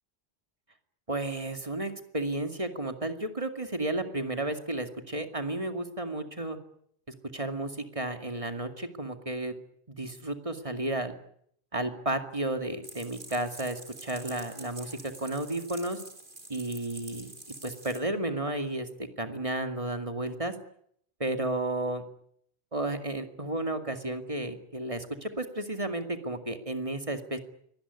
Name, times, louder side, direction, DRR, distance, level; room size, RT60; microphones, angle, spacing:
voice 1, 1.1-6.6 7.1-9.6 9.9-11.1 11.7-16.0 16.5-17.3 17.6-20.5 21.2-22.0 22.7-27.4, right 2 dB, 30° right, 7 dB, 2.3 m, -33 dB
sound 1, 12.8-18.0, right 2 dB, 50° right, 3.6 m, -47 dB
24.5 x 18.5 x 9.7 m, 0.70 s
omnidirectional pair, 1.1 m